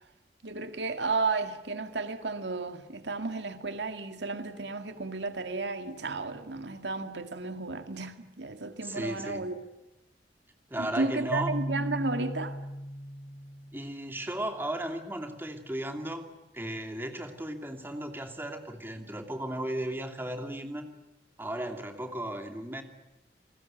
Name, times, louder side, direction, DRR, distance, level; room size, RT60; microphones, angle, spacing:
voice 1, 0.4-9.6 10.8-12.6, right 3 dB, 85° right, 2.1 m, -33 dB
voice 2, 8.8-9.5 10.7-11.6 13.7-16.3 16.5-20.9 21.4-22.8, right 1 dB, 10° right, 2.7 m, -35 dB
Keyboard (musical), 11.3-14.2, equal, 85° left, 3.2 m, -37 dB
30.0 x 20.5 x 9.1 m
head